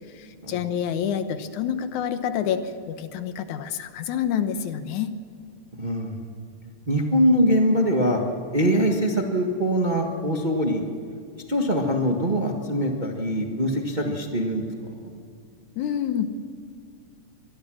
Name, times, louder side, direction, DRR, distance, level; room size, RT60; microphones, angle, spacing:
voice 1, 0.1-5.1 15.8-16.3, left 8 dB, 80° left, 10 dB, 2.4 m, -28 dB
voice 2, 5.8-6.2 6.9-8.2 8.5-10.8 11.5-14.7 15.0-15.1, equal, 25° right, 1 dB, 1.1 m, -23 dB
25.0 x 20.0 x 6.4 m, 2.6 s
omnidirectional pair, 3.5 m